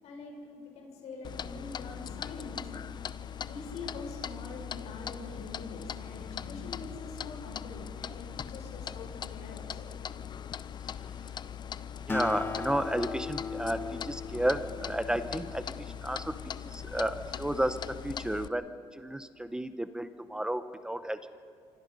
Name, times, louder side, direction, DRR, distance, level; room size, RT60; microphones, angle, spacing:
voice 1, 0.0-2.7 3.4-9.9, left 3 dB, 70° left, 1 dB, 6.2 m, -44 dB
Clock, 1.2-18.5, left 8 dB, 40° left, 0.7 m, -40 dB
voice 2, 12.0-21.4, right 1 dB, 5° right, 11 dB, 0.9 m, -32 dB
Acoustic guitar, 12.1-15.8, left 5 dB, 20° left, 1.0 m, -38 dB
27.5 x 25.0 x 5.5 m, 2.3 s
cardioid pair, 120°, 12 cm